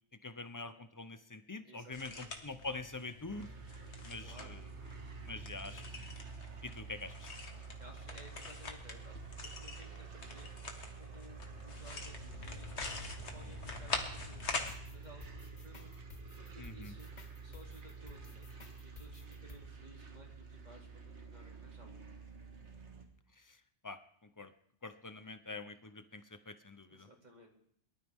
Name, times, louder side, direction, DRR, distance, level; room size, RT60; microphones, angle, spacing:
voice 1, 0.2-3.5 4.0-4.6 5.2-5.8 6.6-7.3 16.6-16.9 23.4-23.6 23.8-24.5 24.8-27.1, left 3 dB, 20° left, 10 dB, 0.8 m, -45 dB
voice 2, 1.6-2.3 4.2-4.6 5.6-5.9 7.8-10.5 11.0-13.1 13.3-15.9 16.4-18.5 18.8-22.0 26.9-27.5, equal, 35° right, 0 dB, 3.2 m, -58 dB
sound 1, 1.9-14.7, left 3 dB, 70° left, 1.9 m, -45 dB
sound 2, 3.3-23.0, right 5 dB, 75° right, 2.1 m, -49 dB
sound 3, 14.7-19.6, left 4 dB, 40° left, 1.3 m, -55 dB
23.0 x 13.0 x 3.7 m, 0.68 s
omnidirectional pair, 1.2 m